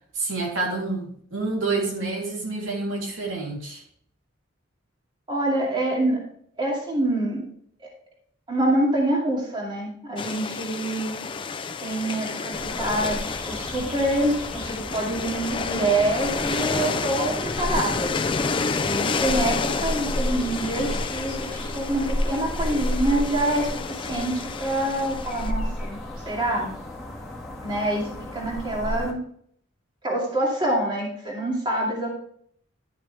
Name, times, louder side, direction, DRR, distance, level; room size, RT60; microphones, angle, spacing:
voice 1, 0.1-3.8, right 3 dB, 90° right, -2 dB, 3.3 m, -28 dB
voice 2, 5.3-6.2 6.6-7.5 7.8-7.9 8.5-11.2 11.8-13.2 13.4-18.2 18.8-26.0 26.3-26.7 27.6-29.2 30.0-32.1, right 1 dB, 25° right, -3 dB, 2.5 m, -26 dB
sound 1, 10.2-25.5, left 4 dB, 25° left, 0.4 m, -30 dB
sound 2, 12.5-29.1, equal, ahead, 1.8 m, -33 dB
11.5 x 6.5 x 3.4 m, 0.63 s
head